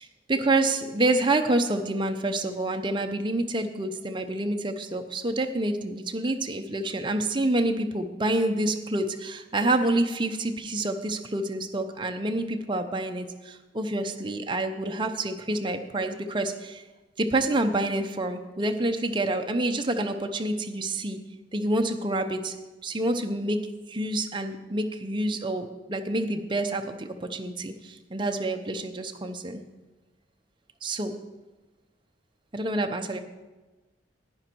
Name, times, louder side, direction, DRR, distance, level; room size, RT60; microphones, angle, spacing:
voice 1, 0.0-16.8 17.2-21.2 21.5-22.5 22.8-23.6 23.9-29.6 30.8-31.2 32.5-33.2, right 2 dB, 25° right, 5 dB, 0.7 m, -28 dB
11.5 x 10.0 x 4.5 m, 1.2 s
head